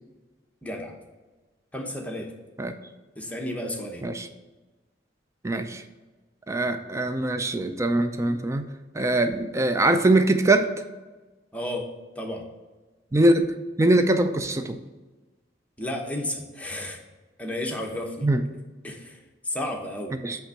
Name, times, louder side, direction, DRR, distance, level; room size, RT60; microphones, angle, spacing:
voice 1, 0.6-0.9 1.7-2.3 3.2-4.1 11.5-11.9 12.2-12.5 15.8-17.0 17.4-18.3 18.8-19.2 19.4-20.2, left 1 dB, 10° left, 1 dB, 0.9 m, -32 dB
voice 2, 5.4-5.8 6.5-8.6 8.9-10.7 13.1-13.5 13.8-14.8 18.2-18.4 20.2-20.4, right 2 dB, 15° right, 8 dB, 0.4 m, -22 dB
8.1 x 3.5 x 6.3 m, 1.2 s
head